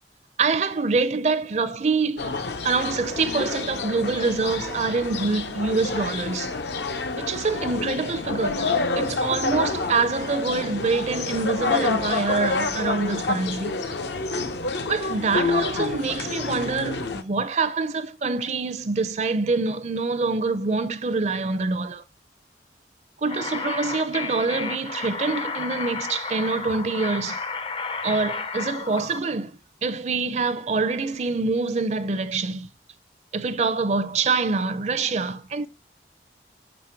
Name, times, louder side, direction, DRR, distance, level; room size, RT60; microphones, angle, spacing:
voice 1, 0.4-2.4 2.6-6.5 7.1-8.7 9.0-13.8 14.9-22.0 23.2-27.4 28.0-29.5 29.8-32.7 33.3-35.7, right 4 dB, 40° right, 0.4 m, -25 dB
sound 1, 2.2-17.2, left 3 dB, 75° left, 0.8 m, -28 dB
sound 2, 23.3-29.2, left 4 dB, 30° left, 0.4 m, -32 dB
6.3 x 5.2 x 4.4 m
head